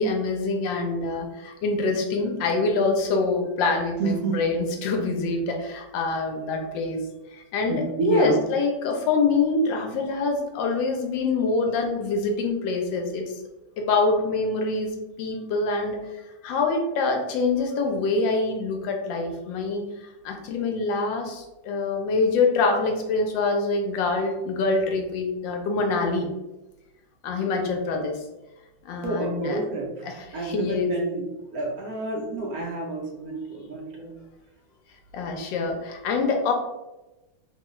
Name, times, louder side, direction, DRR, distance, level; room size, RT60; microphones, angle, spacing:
voice 1, 0.0-7.0 7.3-13.4 13.8-16.1 16.4-19.8 20.2-26.3 27.2-28.2 28.8-29.6 30.0-30.9 35.1-36.5, left 3 dB, 80° left, 3 dB, 1.3 m, -25 dB
voice 2, 4.0-4.4 7.7-8.4 29.0-30.1 30.3-31.3 31.5-34.1, right 3 dB, 70° right, -1 dB, 0.9 m, -28 dB
3.5 x 2.3 x 3.0 m, 1.0 s
omnidirectional pair, 2.1 m